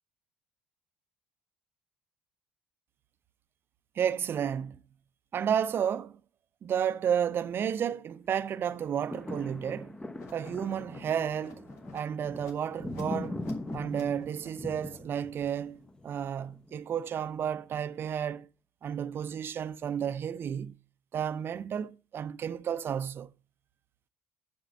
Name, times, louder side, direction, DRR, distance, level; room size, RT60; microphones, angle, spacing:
voice 1, 4.0-4.8 5.3-6.2 6.6-10.0 10.3-13.4 13.7-18.5 18.8-20.8 21.1-23.3, right 8 dB, 45° right, 0.7 m, -32 dB
sound 1, 8.7-16.9 17.5-17.6, left 2 dB, 15° left, 1.0 m, -41 dB
sound 2, 10.1-15.4, left 5 dB, 60° left, 2.9 m, -55 dB
7.3 x 7.2 x 6.9 m
figure-of-eight pair, 55°, 6 cm